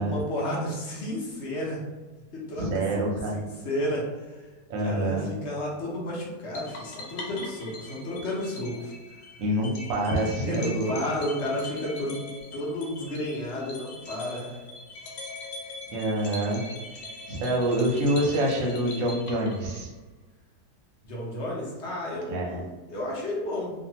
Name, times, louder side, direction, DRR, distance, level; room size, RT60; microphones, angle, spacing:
voice 1, 0.0-1.8 2.3-3.0 3.3-4.5 4.8-9.2 10.4-14.6 21.0-23.7, left 1 dB, 55° left, -4 dB, 0.8 m, -32 dB
voice 2, 2.6-3.4 4.7-5.3 9.4-10.9 15.9-16.6 17.3-19.9 22.3-22.6, right 1 dB, 65° right, -1 dB, 0.9 m, -26 dB
sound 1, 6.5-20.0, left 2 dB, 75° left, 1.3 m, -42 dB
2.7 x 2.4 x 2.8 m, 1.2 s
omnidirectional pair, 1.8 m